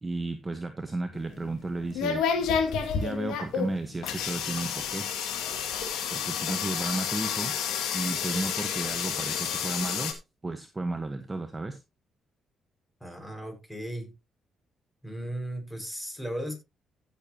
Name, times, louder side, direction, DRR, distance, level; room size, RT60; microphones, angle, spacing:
voice 1, 0.0-2.3 3.0-5.1 6.1-7.5 7.9-10.1 10.4-11.8, right 2 dB, 20° right, 1.2 m, -33 dB
sound 1, 1.1-10.1, left 7 dB, 85° left, 2.2 m, -30 dB
voice 2, 13.0-14.1 15.0-16.6, equal, 5° left, 5.2 m, -36 dB
15.5 x 7.1 x 2.9 m
cardioid pair, 90°, 0 cm